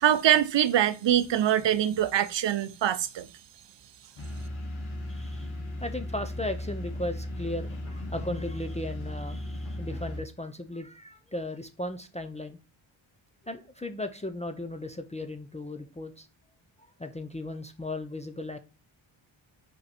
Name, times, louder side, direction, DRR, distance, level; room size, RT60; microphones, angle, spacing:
voice 1, 0.0-3.3, right 11 dB, 65° right, 0.7 m, -24 dB
sound 1, 4.2-10.2, left 1 dB, 80° left, 2.3 m, -36 dB
voice 2, 5.1-5.5 5.8-12.6 13.5-16.3 16.8-18.6, left 1 dB, 15° left, 0.4 m, -36 dB
5.2 x 4.6 x 4.0 m
wide cardioid pair, 175°, 48 cm